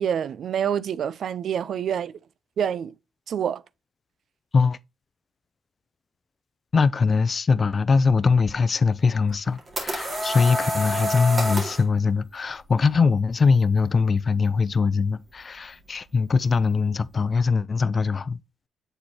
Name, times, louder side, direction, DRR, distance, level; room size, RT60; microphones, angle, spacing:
voice 1, 0.0-2.2 2.6-2.9 3.3-3.6, right 8 dB, 60° right, 0.3 m, -27 dB
voice 2, 6.7-18.4, left 5 dB, 35° left, 0.4 m, -22 dB
sound 1, 9.3-11.9, equal, 35° right, 2.1 m, -28 dB
7.8 x 4.2 x 2.8 m
cardioid pair, 90°, 0 cm